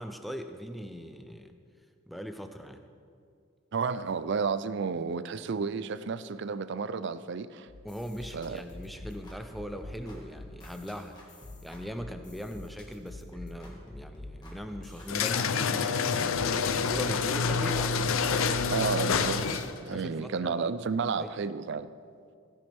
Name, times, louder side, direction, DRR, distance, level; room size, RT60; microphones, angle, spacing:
voice 1, 0.0-1.6 2.1-2.8 7.8-11.2 11.6-18.0 19.9-20.7 21.2-21.3, equal, ahead, 6 dB, 0.5 m, -40 dB
voice 2, 3.7-7.7 8.3-8.6 18.7-21.9, right 5 dB, 55° right, 15 dB, 0.4 m, -32 dB
sound 1, 7.7-19.7, left 1 dB, 20° left, 1.8 m, -46 dB
sound 2, 15.1-19.8, left 5 dB, 75° left, 0.6 m, -27 dB
16.0 x 10.0 x 3.5 m, 2.3 s
head